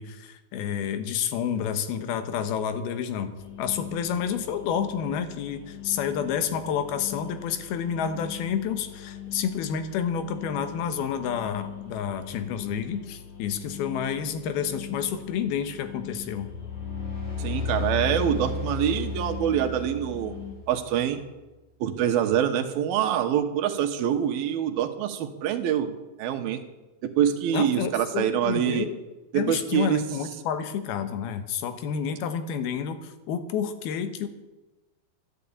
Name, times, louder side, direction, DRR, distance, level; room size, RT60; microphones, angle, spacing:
voice 1, 0.0-3.3 3.6-16.5 27.5-29.0 29.3-34.3, left 8 dB, 85° left, 10 dB, 3.1 m, -29 dB
sound 1, 3.4-20.5, left 9 dB, 55° left, 2.9 m, -42 dB
sound 2, 16.2-20.9, left 4 dB, 35° left, 5.9 m, -33 dB
voice 2, 17.4-20.3 20.7-21.2 21.8-26.6 27.0-28.9 29.3-30.0, right 9 dB, 80° right, 6 dB, 3.0 m, -25 dB
12.5 x 11.5 x 8.6 m, 1.1 s
omnidirectional pair, 4.3 m